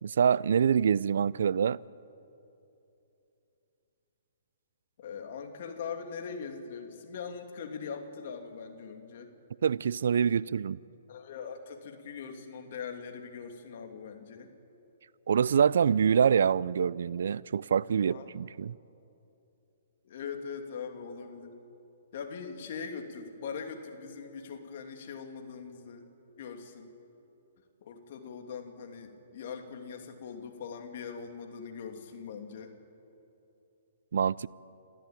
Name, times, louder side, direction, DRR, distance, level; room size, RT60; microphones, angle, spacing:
voice 1, 0.0-1.8 9.6-10.8 15.3-18.7 34.1-34.5, right 7 dB, 70° right, 0.4 m, -25 dB
voice 2, 5.0-9.3 11.1-14.5 18.0-18.3 20.0-21.5 22.1-26.1 26.4-26.9 27.8-32.7, left 6 dB, 55° left, 2.8 m, -41 dB
28.0 x 14.5 x 9.0 m
hypercardioid pair, 135°, 0 cm